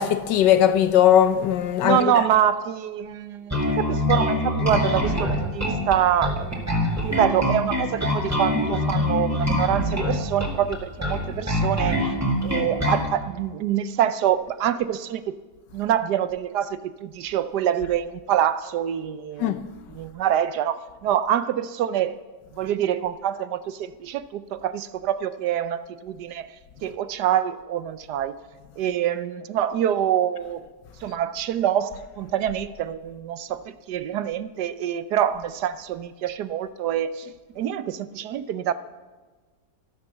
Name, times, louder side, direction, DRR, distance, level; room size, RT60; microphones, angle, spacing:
voice 1, 0.0-2.1 19.4-19.6, left 10 dB, 80° left, 1.5 m, -19 dB
voice 2, 1.8-6.7 7.0-12.1 12.4-15.3 15.7-19.5 19.9-22.1 22.6-26.5 26.8-28.4 28.8-30.6 31.0-38.7, right 10 dB, 75° right, 1.2 m, -25 dB
Bass guitar, 3.5-13.1, left 1 dB, 10° right, 2.2 m, -24 dB
12.5 x 12.5 x 7.1 m
omnidirectional pair, 1.9 m